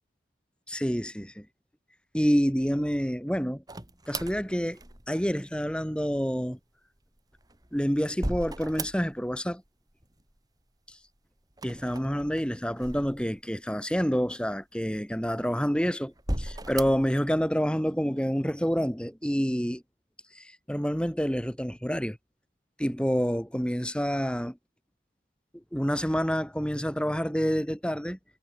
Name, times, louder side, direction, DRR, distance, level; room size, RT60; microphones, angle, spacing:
voice 1, 0.7-1.5 2.1-3.6 4.1-4.8 5.1-6.6 7.7-9.6 11.6-19.8 20.4-22.2 22.8-24.6 25.7-28.2, equal, 5° left, 3.9 m, -28 dB
sound 1, 3.7-5.3 7.2-9.4 9.7-10.4 11.5-13.6 14.2-14.3 15.1-15.7 16.2-17.1, right 1 dB, 20° right, 2.9 m, -37 dB
head